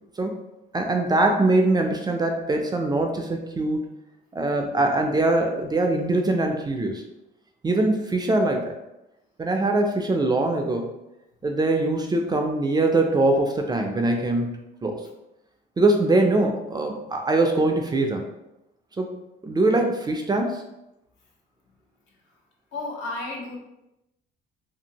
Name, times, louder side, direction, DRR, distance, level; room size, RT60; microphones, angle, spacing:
voice 1, 0.7-3.8 4.3-7.0 7.6-8.7 9.4-10.9 11.4-15.1 15.8-18.3 19.0-19.2 19.4-20.6, right 2 dB, 20° right, 3 dB, 0.4 m, -22 dB
voice 2, 22.7-23.6, left 2 dB, 70° left, -1 dB, 0.8 m, -32 dB
2.6 x 2.6 x 2.8 m, 0.90 s
cardioid pair, 105°, 20 cm